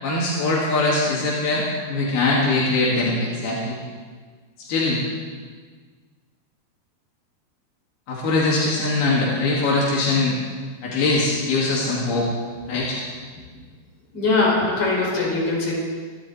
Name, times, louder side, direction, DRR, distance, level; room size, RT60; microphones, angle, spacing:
voice 1, 0.0-3.8 4.6-5.0 8.1-10.4 10.8-12.3 12.7-13.0, left 2 dB, 85° left, -5 dB, 4.3 m, -22 dB
voice 2, 14.1-15.7, left 3 dB, 50° left, -5 dB, 6.8 m, -21 dB
26.5 x 11.5 x 4.3 m, 1.5 s
omnidirectional pair, 4.3 m